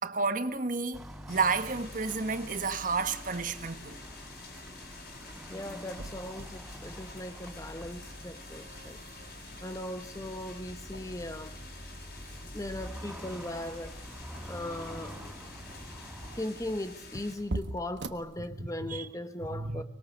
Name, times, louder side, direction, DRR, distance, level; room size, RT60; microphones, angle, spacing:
voice 1, 0.0-4.0 18.6-19.1 19.5-19.8, right 4 dB, 45° right, 1.6 m, -31 dB
sound 1, 0.9-16.4, equal, 5° right, 5.8 m, -46 dB
sound 2, 1.3-17.4, left 3 dB, 60° left, 6.3 m, -48 dB
sound 3, 5.0-19.0, right 1 dB, 75° right, 1.4 m, -46 dB
voice 2, 5.5-9.0 9.6-11.6 12.5-14.0 14.5-15.2 16.4-19.8, left 1 dB, 20° left, 1.1 m, -38 dB
24.5 x 21.0 x 8.0 m
head